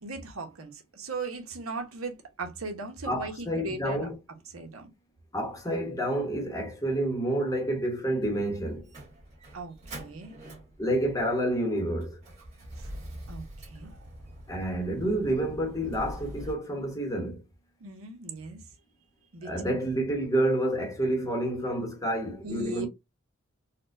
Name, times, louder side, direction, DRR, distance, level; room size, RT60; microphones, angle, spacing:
voice 1, 0.0-4.1 4.5-4.9 9.5-10.4 12.8-12.9 13.3-14.0 17.8-18.7 19.3-19.5 22.4-22.9, right 3 dB, 80° right, 0.9 m, -38 dB
voice 2, 3.1-4.1 5.3-8.9 10.8-12.2 14.5-17.4 19.4-22.9, right 1 dB, 15° left, 0.8 m, -29 dB
Motor vehicle (road), 8.2-16.5, right 1 dB, 35° right, 1.6 m, -45 dB
4.2 x 2.1 x 2.5 m
head